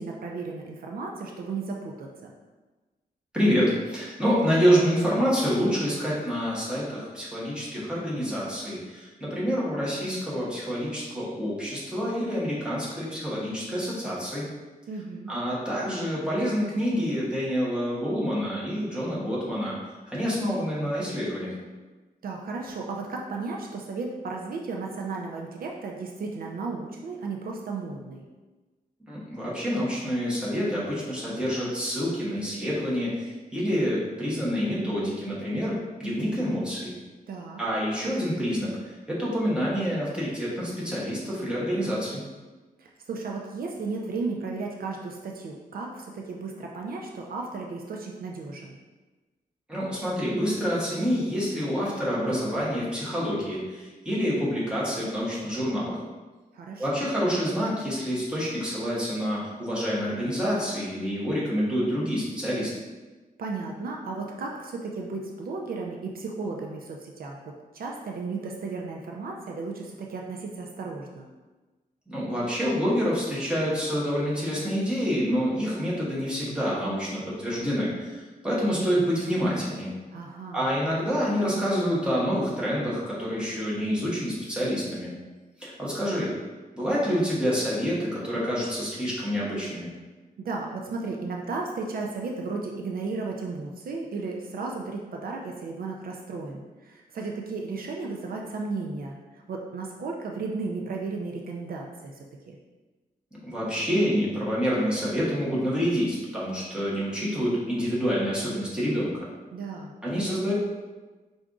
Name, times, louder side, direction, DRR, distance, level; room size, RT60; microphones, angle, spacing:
voice 1, 0.0-2.3 14.9-15.3 22.2-28.2 37.3-37.6 42.8-48.8 56.5-57.1 63.4-71.3 80.1-80.7 90.4-102.1 102.5-102.6 109.5-109.9, right 3 dB, 70° right, 0 dB, 0.5 m, -34 dB
voice 2, 3.3-14.5 15.3-19.7 20.1-21.5 29.1-36.9 37.6-42.2 49.7-56.0 56.8-62.7 72.1-79.9 80.5-85.1 85.6-86.3 86.8-89.9 103.3-109.3 110.0-110.5, equal, 5° right, -7 dB, 1.2 m, -27 dB
4.6 x 2.6 x 3.6 m, 1.2 s
wide cardioid pair, 145°, 16 cm